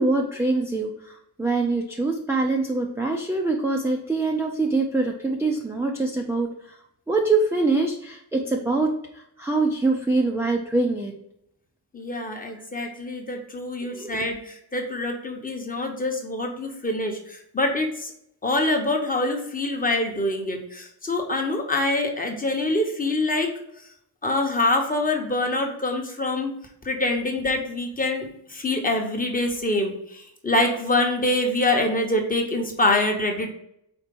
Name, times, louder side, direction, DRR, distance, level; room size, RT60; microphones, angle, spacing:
voice 1, 0.0-6.8 7.1-11.1 13.8-14.2, right 3 dB, 5° right, 0 dB, 0.4 m, -24 dB
voice 2, 11.9-18.1 18.4-23.5 24.2-26.6 26.8-33.5, left 2 dB, 20° left, 3 dB, 0.9 m, -25 dB
4.4 x 4.4 x 5.2 m, 0.76 s
wide cardioid pair, 175°, 43 cm